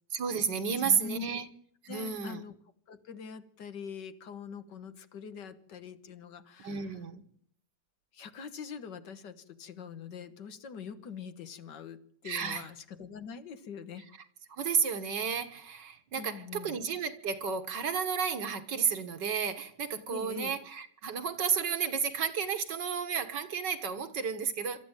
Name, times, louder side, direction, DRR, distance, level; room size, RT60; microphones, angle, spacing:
voice 1, 0.1-1.5 1.9-2.4 6.6-7.2 12.2-12.6 14.5-24.8, right 6 dB, 75° right, 2.1 m, -32 dB
voice 2, 0.8-1.4 1.9-2.5 2.9-6.9 8.1-14.1 16.1-16.8 20.1-20.6, left 6 dB, 75° left, 1.9 m, -44 dB
26.0 x 13.0 x 9.0 m
omnidirectional pair, 1.9 m